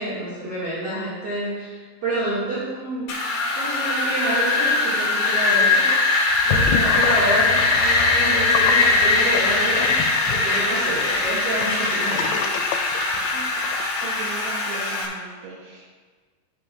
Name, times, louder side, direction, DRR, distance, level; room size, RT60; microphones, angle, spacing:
voice 1, 0.0-3.2 3.5-5.9 6.4-12.4, right 1 dB, 45° right, -11 dB, 2.2 m, -28 dB
Wind, 3.1-15.1, left 3 dB, 70° left, 2.0 m, -21 dB
Gurgling / Sink (filling or washing), 6.3-13.8, left 7 dB, 85° left, 3.0 m, -28 dB
voice 2, 13.3-15.9, right 4 dB, 80° right, -3 dB, 3.1 m, -38 dB
11.5 x 7.6 x 2.4 m, 1.5 s
omnidirectional pair, 5.5 m